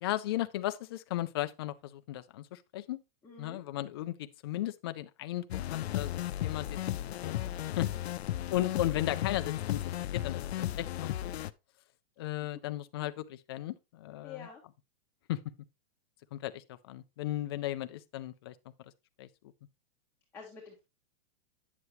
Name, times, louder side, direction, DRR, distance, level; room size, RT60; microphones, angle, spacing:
voice 1, 0.0-3.0 3.4-7.4 7.6-7.9 8.5-11.3 12.2-14.5 15.3-15.4 16.3-18.9 19.2-19.3, left 14 dB, 25° left, 0.3 m, -36 dB
voice 2, 3.2-3.6 7.9-8.1 14.2-14.6 20.3-20.8, left 6 dB, 5° left, 1.5 m, -47 dB
sound 1, 5.5-11.5, left 13 dB, 85° left, 0.6 m, -34 dB
9.5 x 6.8 x 3.0 m
supercardioid pair, 165°, 31 cm